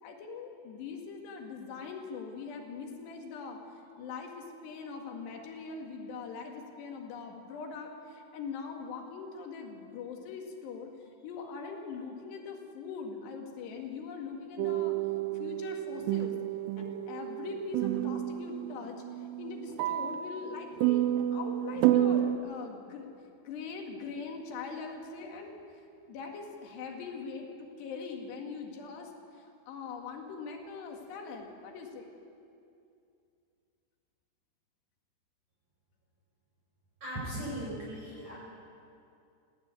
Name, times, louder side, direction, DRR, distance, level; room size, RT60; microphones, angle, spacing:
voice 1, 0.0-3.6 4.0-10.9 11.2-15.0 15.4-16.3 16.8-19.0 19.4-21.0 21.3-23.1 23.5-25.6 26.1-32.1, left 5 dB, 75° left, 2 dB, 4.1 m, -42 dB
sound 1, 14.6-22.4, right 12 dB, 80° right, 2.7 m, -30 dB
voice 2, 37.0-38.3, right 1 dB, 40° right, -7 dB, 6.2 m, -38 dB
19.0 x 15.5 x 9.6 m, 2.5 s
omnidirectional pair, 5.0 m